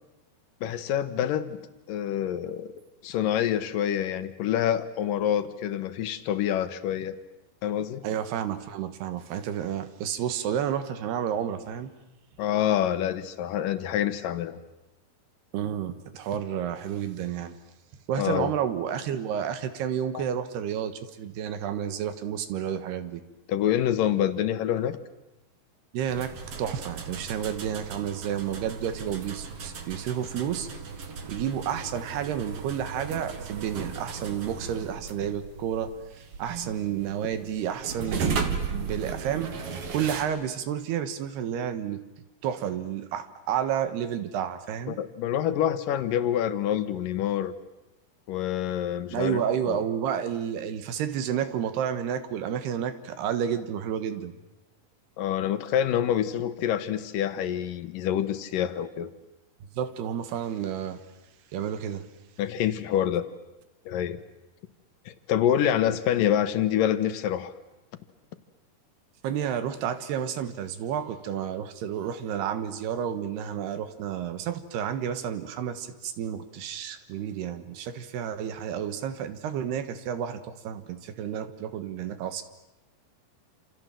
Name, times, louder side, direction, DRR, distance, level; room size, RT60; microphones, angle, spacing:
voice 1, 0.6-1.6 1.9-2.7 3.0-7.1 7.6-8.0 12.4-14.6 18.2-18.5 20.1-20.2 23.5-25.0 44.9-47.5 48.3-49.8 55.2-59.1 62.4-63.2 63.9-64.2 65.1-67.5, left 10 dB, 70° left, 11 dB, 2.6 m, -27 dB
voice 2, 8.0-11.9 15.5-17.6 18.1-23.2 25.9-30.7 31.3-35.9 36.4-39.5 39.9-42.0 42.4-45.0 49.1-54.3 59.7-61.0 61.5-62.1 69.2-82.4, right 9 dB, 85° right, 10 dB, 3.5 m, -31 dB
sound 1, 26.1-40.2, right 5 dB, 45° right, 2.3 m, -36 dB
28.0 x 27.5 x 7.6 m, 0.97 s
omnidirectional pair, 4.5 m